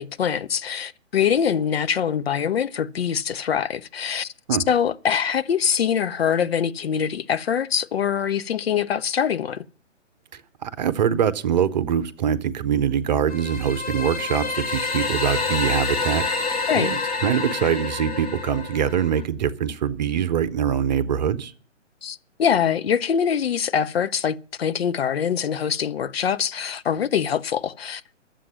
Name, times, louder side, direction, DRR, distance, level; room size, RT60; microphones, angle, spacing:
voice 1, 0.0-4.3 4.7-9.6 16.7-16.9 22.0-28.1, left 8 dB, 55° left, 0.7 m, -24 dB
voice 2, 10.6-16.5 16.8-21.5, right 8 dB, 35° right, 0.8 m, -23 dB
sound 1, 13.3-19.2, left 4 dB, 30° left, 1.9 m, -28 dB
11.0 x 7.7 x 9.6 m
figure-of-eight pair, 130°, 37 cm